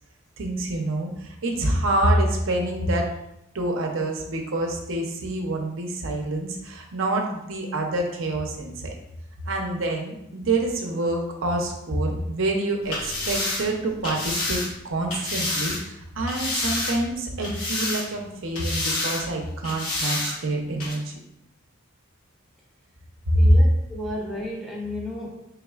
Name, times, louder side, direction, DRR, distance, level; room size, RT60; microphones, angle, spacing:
voice 1, 0.4-3.1 3.5-8.9 9.4-14.6 14.8-21.2 23.3-23.6, right 1 dB, 65° right, 1 dB, 0.6 m, -26 dB
sound 1, 12.8-15.8 16.3-17.1 17.4-18.2 18.5-19.2 19.6-20.3 20.8-20.9, left 2 dB, 85° left, 1.0 m, -29 dB
voice 2, 23.3-25.5, left 1 dB, ahead, -4 dB, 0.5 m, -33 dB
4.0 x 3.4 x 2.3 m, 0.83 s
head